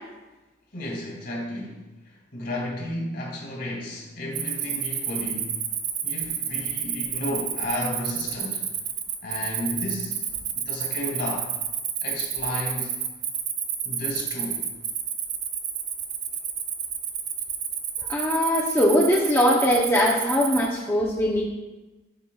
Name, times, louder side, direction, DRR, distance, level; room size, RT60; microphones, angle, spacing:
voice 1, 0.7-5.6 6.0-8.6 9.2-10.2 10.5-11.5 12.0-13.0 13.8-14.7, left 1 dB, 55° left, -3 dB, 2.3 m, -33 dB
Cricket, 4.3-20.7, right 8 dB, 55° right, 0.6 m, -30 dB
voice 2, 18.1-21.4, left 1 dB, 15° left, -4 dB, 0.7 m, -21 dB
11.5 x 5.1 x 2.3 m, 1.1 s
head